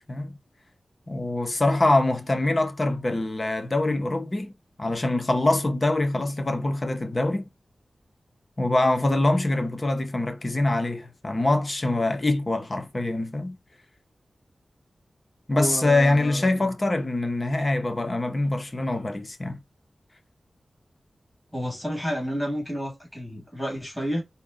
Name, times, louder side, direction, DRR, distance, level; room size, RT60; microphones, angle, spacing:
voice 1, 1.1-4.5 4.8-7.5 8.6-13.6 15.5-19.6, left 2 dB, 35° left, 0.7 m, -24 dB
voice 2, 15.5-16.7 21.5-24.2, equal, 5° left, 1.9 m, -31 dB
4.2 x 2.1 x 3.6 m
wide cardioid pair, 105°, 0 cm